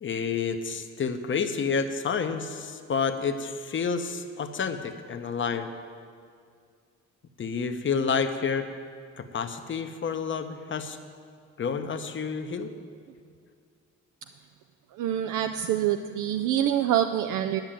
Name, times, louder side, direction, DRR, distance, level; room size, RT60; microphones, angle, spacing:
voice 1, 0.0-5.7 7.4-8.7 9.2-11.0 11.6-12.7, left 5 dB, 40° left, 8 dB, 0.9 m, -29 dB
voice 2, 15.0-17.6, right 11 dB, 80° right, 8 dB, 0.5 m, -26 dB
10.5 x 6.3 x 9.0 m, 2.2 s
cardioid pair, 90°, 30 cm